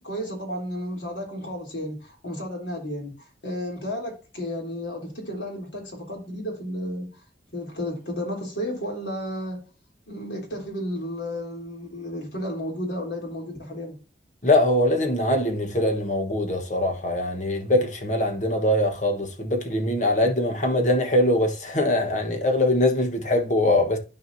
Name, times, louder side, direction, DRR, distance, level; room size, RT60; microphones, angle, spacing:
voice 1, 0.0-3.1 3.4-7.1 7.5-9.6 10.1-13.9, equal, 85° left, 3.5 m, -32 dB
voice 2, 14.4-24.0, left 1 dB, 45° left, 1.4 m, -22 dB
12.5 x 4.8 x 2.8 m
head